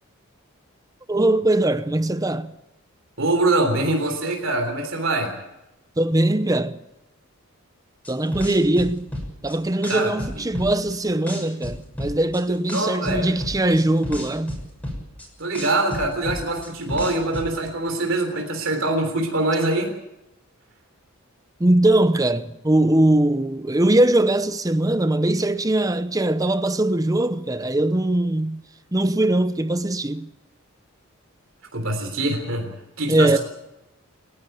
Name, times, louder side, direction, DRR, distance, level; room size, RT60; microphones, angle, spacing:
voice 1, 1.1-2.5 6.0-6.8 8.1-9.1 9.4-14.6 21.6-28.6 28.9-30.3 33.1-33.4, right 1 dB, 15° right, 0.7 m, -21 dB
voice 2, 3.2-5.3 9.8-10.1 12.5-13.3 15.4-19.9 31.7-32.7 33.0-33.4, right 2 dB, 60° right, 3.6 m, -24 dB
sound 1, 8.0-9.5 9.8-11.0 11.3-12.4 12.7-15.3 15.5-17.5, left 1 dB, 5° left, 6.6 m, -31 dB
29.0 x 11.5 x 9.2 m
head